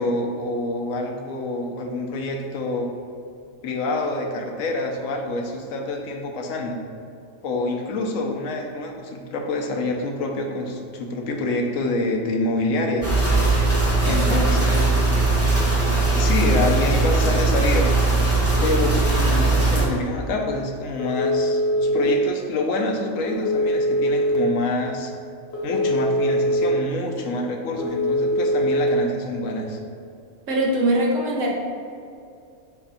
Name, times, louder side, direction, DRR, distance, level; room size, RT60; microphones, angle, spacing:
voice 1, 0.0-2.9 3.6-6.8 7.4-13.1 14.0-15.1 15.8-18.1 18.6-25.1 25.6-29.8, left 2 dB, 80° left, 1 dB, 1.1 m, -26 dB
sound 1, 13.0-19.9, right 3 dB, 15° right, 0.9 m, -19 dB
voice 2, 14.0-14.6 30.5-31.5, right 1 dB, 70° right, -2 dB, 1.4 m, -23 dB
Telephone, 21.0-22.1 23.3-24.4 25.5-26.6 27.8-28.9, equal, 55° left, 1.3 m, -22 dB
7.0 x 2.6 x 5.5 m, 2.5 s
omnidirectional pair, 1.4 m